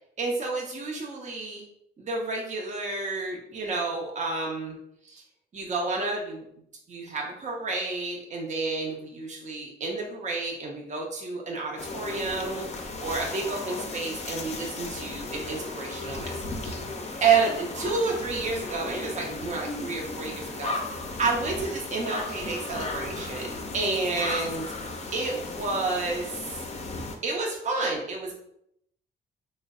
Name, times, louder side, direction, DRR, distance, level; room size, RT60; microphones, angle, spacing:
voice 1, 0.2-1.6 2.0-4.8 5.0-5.2 5.5-6.5 6.9-12.7 13.0-16.4 16.6-16.7 17.2-20.8 21.2-24.6 25.1-26.4 27.2-28.3, right 4 dB, 35° right, -1 dB, 0.7 m, -30 dB
sound 1, 11.8-27.2, left 3 dB, 35° left, 0.6 m, -35 dB
3.2 x 2.1 x 3.6 m, 0.74 s
cardioid pair, 90°, 20 cm